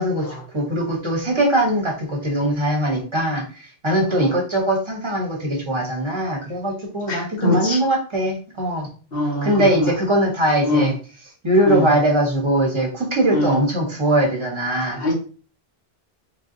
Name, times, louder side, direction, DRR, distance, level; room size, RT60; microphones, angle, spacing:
voice 1, 0.0-8.9 9.4-10.9 11.4-15.0, right 1 dB, 30° right, -1 dB, 0.8 m, -21 dB
voice 2, 7.1-7.8 9.1-9.9 10.6-10.9 11.6-11.9 13.3-13.6 15.0-15.1, left 1 dB, 60° left, -1 dB, 1.2 m, -23 dB
3.5 x 2.6 x 2.5 m, 0.38 s
omnidirectional pair, 1.1 m